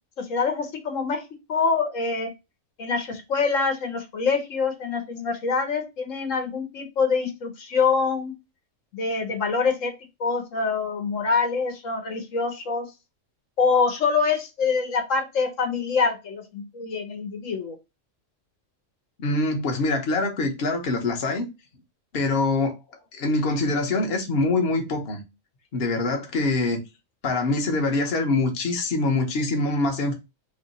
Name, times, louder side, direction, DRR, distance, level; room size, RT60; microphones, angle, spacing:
voice 1, 0.2-1.2 1.5-2.3 2.8-8.3 8.9-9.9 10.2-12.9 13.6-17.8, left 5 dB, 75° left, 1.3 m, -25 dB
voice 2, 19.2-21.5 22.1-22.8 23.1-25.2 25.7-26.8 27.2-30.1, left 2 dB, 50° left, 1.0 m, -24 dB
3.0 x 2.7 x 4.0 m
omnidirectional pair, 1.4 m